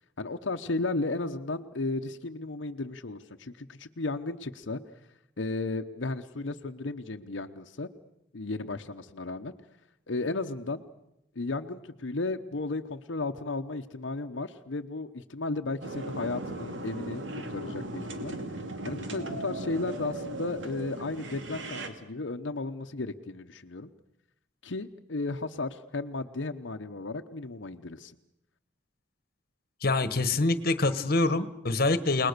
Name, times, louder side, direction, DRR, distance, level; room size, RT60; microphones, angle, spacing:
voice 1, 0.2-4.8 5.4-7.9 8.3-9.5 10.1-10.8 11.4-18.3 18.8-23.9 24.6-28.1, left 3 dB, 85° left, 5 dB, 0.9 m, -34 dB
sound 1, 15.8-21.9, right 1 dB, 80° right, 2.5 m, -37 dB
voice 2, 29.8-32.3, left 2 dB, 55° left, 13 dB, 1.3 m, -25 dB
29.5 x 20.0 x 6.8 m, 0.83 s
head